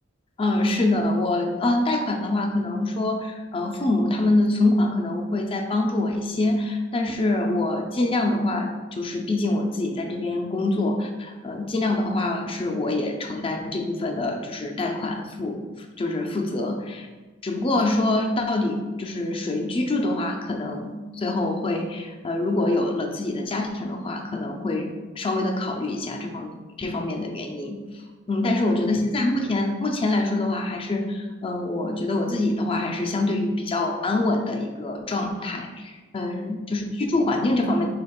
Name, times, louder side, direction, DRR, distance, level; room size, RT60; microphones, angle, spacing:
voice 1, 0.4-17.1 17.4-27.8 28.3-37.9, left 2 dB, 25° left, 2 dB, 0.4 m, -25 dB
5.0 x 3.9 x 2.3 m, 1.3 s
head